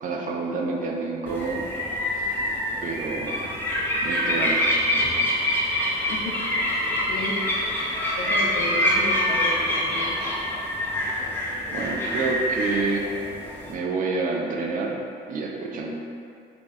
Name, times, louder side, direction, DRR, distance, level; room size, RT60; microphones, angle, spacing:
voice 1, 0.0-1.7 2.2-2.3 2.8-3.5 4.0-5.0 11.7-13.1 13.7-15.0 15.3-16.0, right 3 dB, 50° right, 0 dB, 0.5 m, -28 dB
sound 1, 1.3-13.7, left 1 dB, 10° left, 0.6 m, -25 dB
voice 2, 6.1-6.4 7.1-7.4 8.1-10.3, left 2 dB, 70° left, -2 dB, 0.7 m, -33 dB
3.7 x 2.9 x 2.5 m, 2.5 s
cardioid pair, 110°, 17 cm